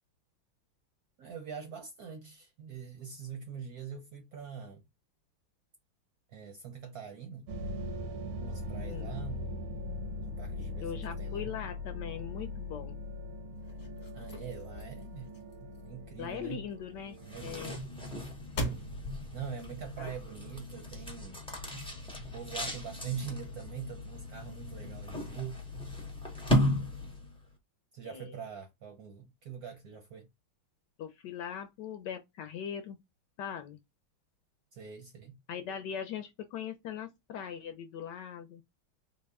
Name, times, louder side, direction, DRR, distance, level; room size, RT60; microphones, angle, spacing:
voice 1, 1.2-4.8 6.3-7.5 8.4-9.6 10.2-11.6 14.1-15.3 15.6-16.7 17.2-17.8 19.3-21.4 22.3-25.7 27.9-30.3 34.7-35.4, right 7 dB, 65° right, 0.9 m, -43 dB
sound 1, 7.5-17.8, left 2 dB, 90° right, 1.6 m, -40 dB
voice 2, 10.8-13.0 16.2-17.8 20.0-20.1 28.0-28.4 31.0-33.0 33.4-33.8 35.5-38.6, left 8 dB, 70° left, 1.1 m, -40 dB
sound 2, 13.5-20.6, equal, 50° left, 1.3 m, -43 dB
sound 3, 17.1-27.4, left 1 dB, 10° left, 0.3 m, -36 dB
4.0 x 2.1 x 3.4 m
omnidirectional pair, 2.2 m